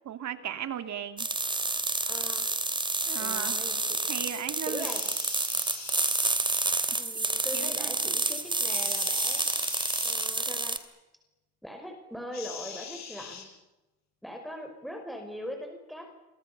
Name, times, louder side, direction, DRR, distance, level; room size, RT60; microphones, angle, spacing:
voice 1, 0.0-1.3 3.1-3.6 4.1-4.9 7.5-7.9, right 9 dB, 70° right, 9 dB, 2.7 m, -36 dB
sound 1, 1.2-10.8, right 2 dB, 15° right, 2.6 m, -29 dB
voice 2, 2.0-2.5 3.2-4.3 4.7-5.1 7.0-9.4 10.0-10.8 11.6-13.5 14.2-16.1, equal, ahead, 4 dB, 5.4 m, -41 dB
sound 2, 4.8-7.0 8.7-10.3 12.3-13.5, left 7 dB, 65° left, 5.9 m, -43 dB
28.5 x 24.0 x 6.9 m, 1.0 s
cardioid pair, 90°, 30 cm